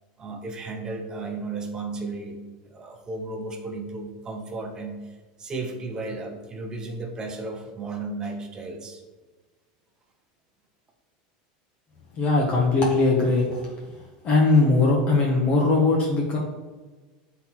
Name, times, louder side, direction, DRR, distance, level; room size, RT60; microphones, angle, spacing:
voice 1, 0.2-2.4 2.6-9.0, right 3 dB, 20° right, 4 dB, 0.8 m, -34 dB
voice 2, 12.1-13.7 14.2-16.4, left 3 dB, 35° left, -2 dB, 1.2 m, -20 dB
7.9 x 4.0 x 4.4 m, 1.3 s
supercardioid pair, 155°, 4 cm